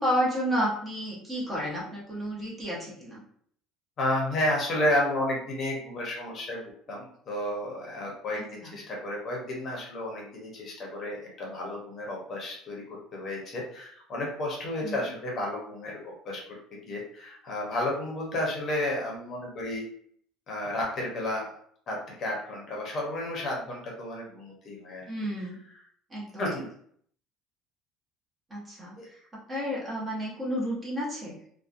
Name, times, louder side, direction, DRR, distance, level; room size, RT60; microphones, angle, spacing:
voice 1, 0.0-3.2 8.6-8.8 14.8-15.1 25.1-25.6 26.1-26.5 28.5-28.9 29.5-31.4, equal, 15° right, -5 dB, 0.6 m, -31 dB
voice 2, 4.0-6.6 6.9-16.4 16.9-19.8 20.5-21.5 21.9-25.1 26.4-26.7 29.0-29.1, left 1 dB, 30° left, -2 dB, 0.7 m, -32 dB
2.7 x 2.1 x 2.4 m, 0.62 s
cardioid pair, 170°, 0 cm